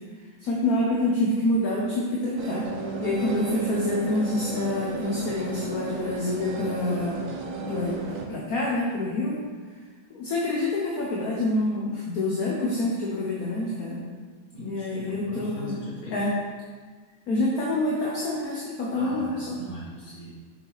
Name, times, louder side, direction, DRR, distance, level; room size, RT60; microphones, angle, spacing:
voice 1, 0.4-2.7 3.0-7.2 7.7-9.4 10.1-14.0 14.6-15.8 16.1-16.3 17.3-19.6, left 2 dB, 55° left, -4 dB, 1.3 m, -27 dB
sound 1, 2.4-8.3, right 4 dB, 60° right, 0.9 m, -34 dB
voice 2, 14.5-16.2 18.9-20.3, equal, 25° left, -7 dB, 2.0 m, -39 dB
6.6 x 6.0 x 4.0 m, 1.5 s
omnidirectional pair, 2.1 m